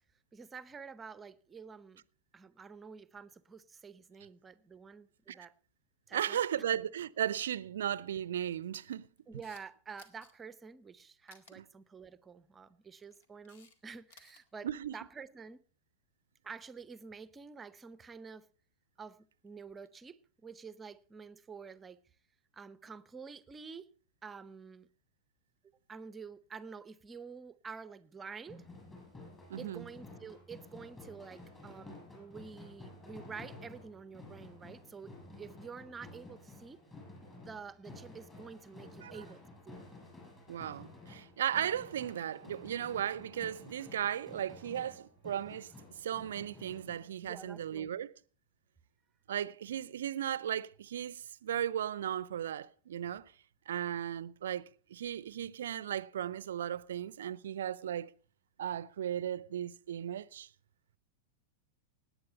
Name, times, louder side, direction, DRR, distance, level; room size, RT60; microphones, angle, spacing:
voice 1, 0.3-2.0 2.3-5.5 6.1-6.4 9.3-14.7 14.9-15.6 16.4-18.4 19.0-22.0 22.5-23.9 24.2-24.9 25.9-28.6 29.6-36.8 37.2-39.8 47.2-47.9, right 5 dB, 15° right, 0.8 m, -49 dB
voice 2, 6.1-9.1 11.6-11.7 14.6-14.9 29.5-29.9 39.0-39.2 40.5-45.7 46.0-48.1 49.3-53.3 53.7-58.1 58.6-60.5, right 10 dB, 65° right, 0.5 m, -36 dB
Camera, 9.2-9.6 10.0-10.3 11.3-11.5 12.8-13.8 14.0-14.4, left 5 dB, 60° left, 2.0 m, -59 dB
sound 1, 28.5-47.1, left 2 dB, 20° left, 7.0 m, -52 dB
18.5 x 9.1 x 5.5 m
figure-of-eight pair, 95°, 0 cm